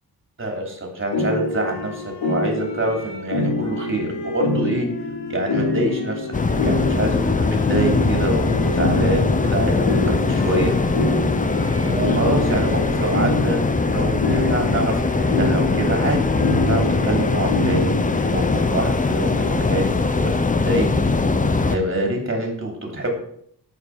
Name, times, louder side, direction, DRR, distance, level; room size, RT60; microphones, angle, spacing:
voice 1, 0.4-4.9 5.3-6.3 6.6-10.7 11.8-20.9 21.7-23.1, right 1 dB, 30° right, 2 dB, 3.1 m, -26 dB
sound 1, 1.1-18.6, left 2 dB, 90° left, 3.5 m, -25 dB
sound 2, 6.3-21.8, left 3 dB, 20° left, 0.7 m, -21 dB
17.0 x 7.1 x 4.8 m, 0.67 s
wide cardioid pair, 160°, 39 cm